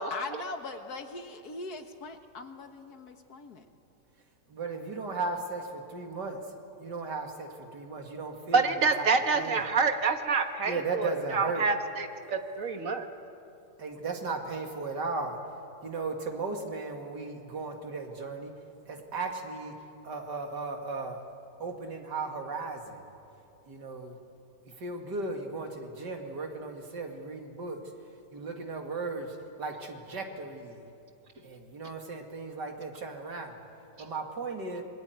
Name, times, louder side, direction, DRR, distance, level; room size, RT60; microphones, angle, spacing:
voice 1, 0.1-3.7, left 3 dB, 65° left, 6 dB, 2.0 m, -40 dB
voice 2, 4.5-6.4 6.8-9.1 9.3-9.7 10.6-11.7 13.8-15.4 15.8-18.5 18.9-19.7 20.0-21.2 21.6-23.1 23.7-24.2 24.8-27.8 28.3-30.9 31.4-33.7 34.0-34.8, right 3 dB, 85° right, 3 dB, 2.9 m, -36 dB
voice 3, 8.5-13.1, right 4 dB, 50° right, 6 dB, 1.7 m, -27 dB
27.0 x 21.5 x 9.4 m, 2.7 s
omnidirectional pair, 1.8 m